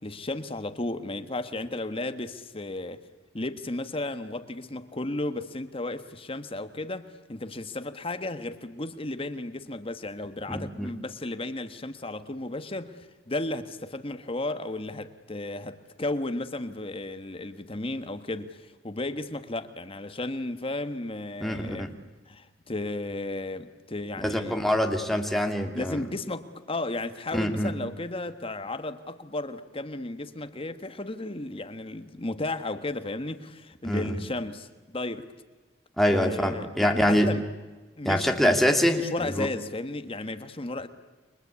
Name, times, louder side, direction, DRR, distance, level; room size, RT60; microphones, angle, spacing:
voice 1, 0.0-3.0 3.3-21.9 22.3-24.6 25.7-35.3 36.1-37.4 38.0-38.6 39.0-40.9, left 2 dB, 30° left, 1.4 m, -34 dB
voice 2, 10.5-10.9 21.4-21.9 24.2-26.0 27.3-27.7 33.8-34.2 36.0-37.3 38.0-39.5, equal, ahead, 2.7 m, -25 dB
29.5 x 24.0 x 8.4 m
head